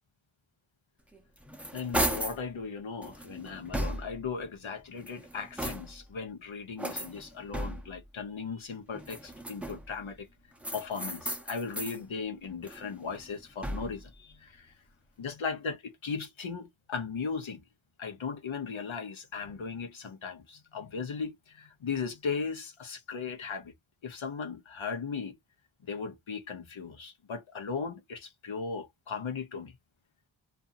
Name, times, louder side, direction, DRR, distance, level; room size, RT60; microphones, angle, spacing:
sound 1, 1.1-2.5 3.0-4.3 4.9-6.1 6.8-8.0 8.9-10.0 10.6-12.0 12.4-14.1, right 1 dB, 5° right, 0.6 m, -36 dB
voice 1, 1.7-10.3 10.7-14.8 15.2-17.6 18.0-23.7 24.0-25.4 25.9-29.8, left 5 dB, 70° left, 0.7 m, -37 dB
2.6 x 2.5 x 2.4 m
wide cardioid pair, 40°, 49 cm